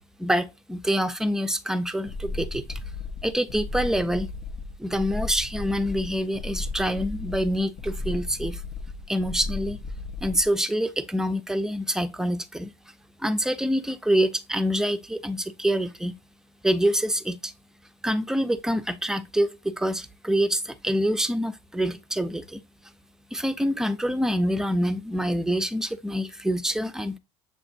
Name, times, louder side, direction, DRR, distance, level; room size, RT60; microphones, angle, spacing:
voice 1, 0.2-2.8 3.2-4.3 4.8-8.6 9.1-9.8 10.2-12.7 13.2-16.1 16.6-17.5 18.0-22.6 23.3-27.2, equal, 5° right, 0.6 m, -26 dB
sound 1, 2.1-10.5, left 3 dB, 55° left, 0.7 m, -35 dB
6.9 x 3.0 x 2.5 m
supercardioid pair, 80°, 15 cm